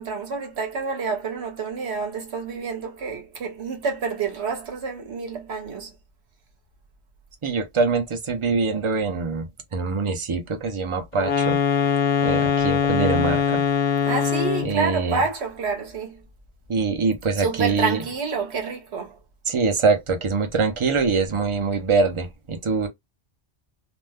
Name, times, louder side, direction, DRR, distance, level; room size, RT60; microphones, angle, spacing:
voice 1, 0.0-5.9 14.0-16.2 17.4-19.2, right 5 dB, 70° right, 1.1 m, -28 dB
voice 2, 7.4-11.6 12.2-13.6 14.6-15.2 16.7-18.0 19.5-22.9, right 4 dB, 35° right, 0.6 m, -24 dB
sound 1, 11.2-14.8, left 7 dB, 65° left, 0.8 m, -22 dB
2.6 x 2.1 x 3.4 m
omnidirectional pair, 1.1 m